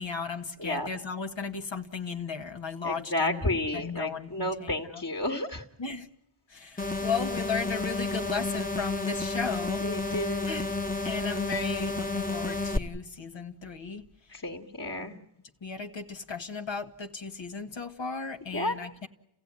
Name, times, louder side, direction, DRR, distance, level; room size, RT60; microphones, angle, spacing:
voice 1, 0.0-3.5 3.7-5.0 5.8-6.1 6.5-9.8 10.4-10.7 11.0-14.0 15.0-15.2 15.6-19.1, left 5 dB, 65° left, 4 dB, 1.8 m, -35 dB
voice 2, 2.8-5.6 9.8-10.5 14.3-15.1 18.5-18.7, left 1 dB, 45° left, -1 dB, 2.3 m, -31 dB
sound 1, 6.8-12.8, left 2 dB, 15° left, 1.3 m, -31 dB
30.0 x 15.5 x 9.7 m, 0.85 s
cardioid pair, 50°, 48 cm